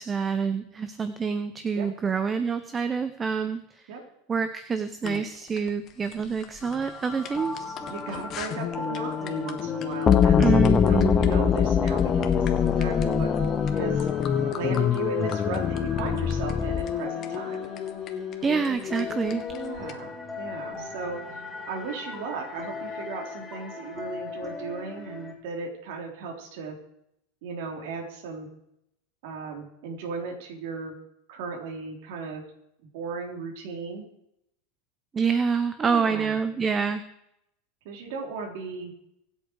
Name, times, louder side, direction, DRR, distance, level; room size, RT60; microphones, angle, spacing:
voice 1, 0.0-3.9 4.3-7.8 10.4-11.3 18.4-19.4 35.1-37.0, right 5 dB, 20° right, 10 dB, 0.9 m, -27 dB
sound 1, 5.0-19.9, left 10 dB, 40° left, 1.7 m, -33 dB
sound 2, 6.6-25.3, left 3 dB, 5° left, 3.8 m, -39 dB
voice 2, 7.8-13.3 13.7-14.1 14.5-17.7 19.5-26.8 27.4-28.5 29.2-30.9 31.3-32.4 32.9-34.0 35.8-36.4 37.8-38.9, right 4 dB, 70° right, 0 dB, 4.0 m, -36 dB
sound 3, 10.1-17.0, left 7 dB, 25° left, 0.8 m, -23 dB
24.5 x 8.4 x 4.8 m, 0.78 s
supercardioid pair, 130°, 0 cm